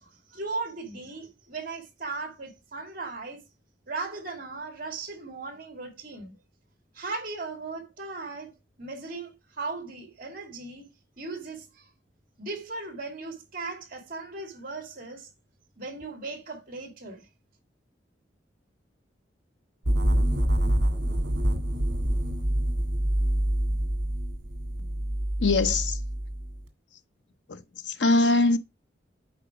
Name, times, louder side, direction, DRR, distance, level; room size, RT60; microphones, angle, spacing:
voice 1, 0.0-3.4 3.9-6.4 6.9-10.9 11.2-11.9 12.4-15.3 15.8-17.3, right 3 dB, 50° right, 2.6 m, -37 dB
sound 1, 19.8-26.6, right 1 dB, 75° right, 1.9 m, -26 dB
voice 2, 25.4-26.0 27.5-28.6, left 3 dB, 85° left, 0.9 m, -23 dB
8.3 x 4.9 x 4.9 m
head